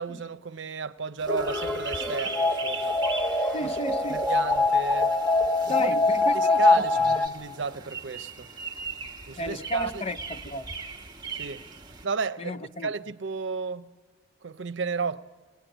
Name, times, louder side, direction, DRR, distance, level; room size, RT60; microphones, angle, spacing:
voice 1, 0.0-3.0 3.6-3.8 4.1-5.1 5.7-5.9 6.3-8.5 9.3-10.0 11.4-11.6 12.0-13.9 14.4-15.3, right 5 dB, 75° right, 0.7 m, -33 dB
sound 1, 1.2-12.1, right 4 dB, 25° right, 1.2 m, -40 dB
sound 2, 1.3-7.3, left 2 dB, 5° left, 1.0 m, -24 dB
voice 2, 3.5-4.2 5.7-7.2 9.4-10.7 12.4-12.9, left 1 dB, 35° left, 0.6 m, -33 dB
24.0 x 20.5 x 9.1 m
head